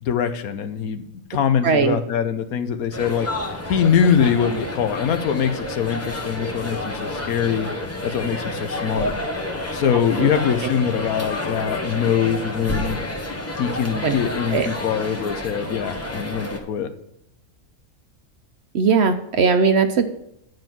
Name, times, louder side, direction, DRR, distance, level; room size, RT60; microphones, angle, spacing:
voice 1, 0.0-1.0 1.3-3.3 3.7-7.7 8.0-9.1 9.7-13.0 13.6-16.9, left 8 dB, 80° left, 9 dB, 1.2 m, -23 dB
voice 2, 1.6-2.0 10.2-10.3 14.0-14.2 14.5-14.7 18.7-20.1, right 5 dB, 60° right, 8 dB, 0.8 m, -19 dB
sound 1, 2.9-16.6, left 1 dB, 10° left, 0.9 m, -29 dB
9.1 x 5.3 x 5.8 m, 0.82 s
omnidirectional pair, 1.5 m